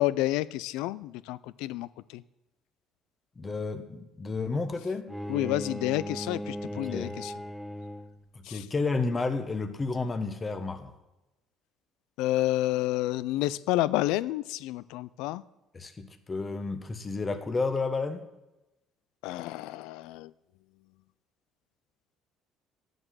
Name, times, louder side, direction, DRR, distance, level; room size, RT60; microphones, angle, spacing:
voice 1, 0.0-2.2 5.3-7.3 8.5-8.6 12.2-15.4 19.2-20.3, left 16 dB, 85° left, 19 dB, 0.4 m, -29 dB
voice 2, 3.4-5.1 6.7-7.1 8.3-10.9 15.7-18.2, left 3 dB, 25° left, 8 dB, 1.2 m, -31 dB
Bowed string instrument, 5.1-8.3, equal, ahead, 0.5 m, -38 dB
9.8 x 7.8 x 7.5 m, 0.99 s
cardioid pair, 95°, 0 cm